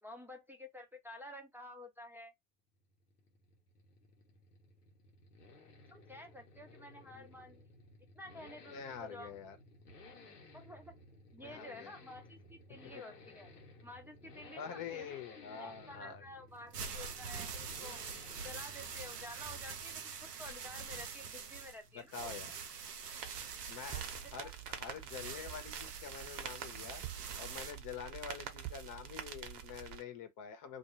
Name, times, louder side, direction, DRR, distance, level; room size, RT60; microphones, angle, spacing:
voice 1, 0.0-2.3 5.9-7.7 8.1-9.3 10.5-10.9 11.3-13.5 13.8-15.1 15.5-18.0 18.4-22.3 24.2-24.5, left 1 dB, 5° right, 0.7 m, -51 dB
sound 1, 2.8-20.8, left 2 dB, 90° left, 0.9 m, -57 dB
voice 2, 8.7-9.6 11.4-11.9 14.5-16.2 22.1-22.6 23.7-30.8, left 7 dB, 45° left, 0.9 m, -46 dB
sound 2, 16.5-27.7, right 6 dB, 90° right, 0.7 m, -45 dB
sound 3, 23.2-30.0, right 9 dB, 45° right, 0.9 m, -46 dB
2.3 x 2.2 x 3.1 m
hypercardioid pair, 70°, 46 cm